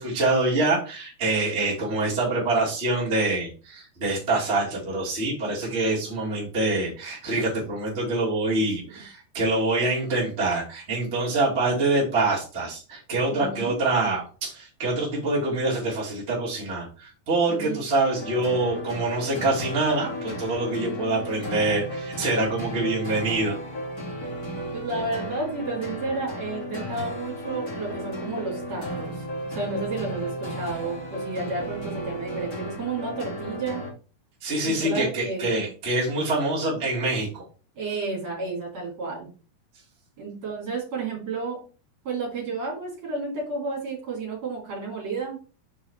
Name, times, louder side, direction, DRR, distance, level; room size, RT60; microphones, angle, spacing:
voice 1, 0.0-23.6 34.4-37.4, right 2 dB, 20° right, -6 dB, 2.0 m, -25 dB
voice 2, 13.3-13.8 17.5-17.8 24.7-29.2 29.5-33.8 34.6-35.6 37.8-39.3 40.2-41.6 42.1-45.4, right 3 dB, 45° right, -3 dB, 3.6 m, -31 dB
sound 1, 18.1-33.9, equal, 25° left, 2.9 m, -34 dB
6.4 x 4.6 x 4.5 m, 0.36 s
omnidirectional pair, 4.8 m